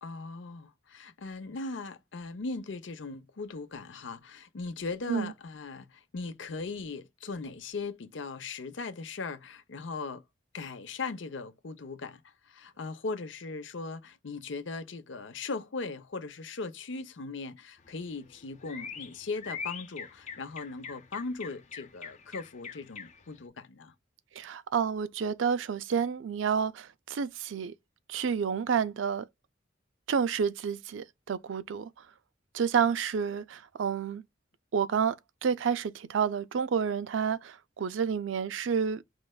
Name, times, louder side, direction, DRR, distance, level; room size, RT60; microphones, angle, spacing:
voice 1, 0.0-10.2 10.5-23.9, left 3 dB, 80° left, 0.7 m, -39 dB
sound 1, 17.8-23.4, left 6 dB, 40° left, 0.6 m, -44 dB
voice 2, 24.4-27.7 28.1-29.2 30.1-31.9 32.5-34.2 34.7-35.2 35.4-39.0, right 6 dB, 90° right, 0.4 m, -29 dB
4.5 x 3.2 x 2.2 m
head